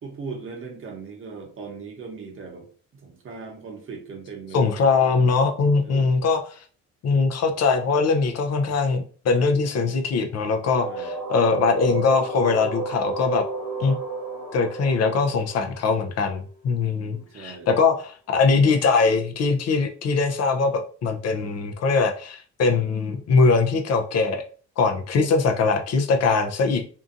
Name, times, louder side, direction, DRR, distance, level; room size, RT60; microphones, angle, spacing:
voice 1, 0.0-2.7 2.9-4.7 5.8-6.1 10.8-11.1 16.9-17.7, right 5 dB, 45° right, 2 dB, 0.9 m, -39 dB
voice 2, 4.5-6.6 7.0-13.4 13.8-14.0 14.5-24.4 24.8-26.8, left 4 dB, 55° left, 4 dB, 0.5 m, -21 dB
sound 1, 10.8-16.5, right 3 dB, 70° left, 0.9 m, -32 dB
2.7 x 2.4 x 2.5 m, 0.42 s
cardioid pair, 90°, 30 cm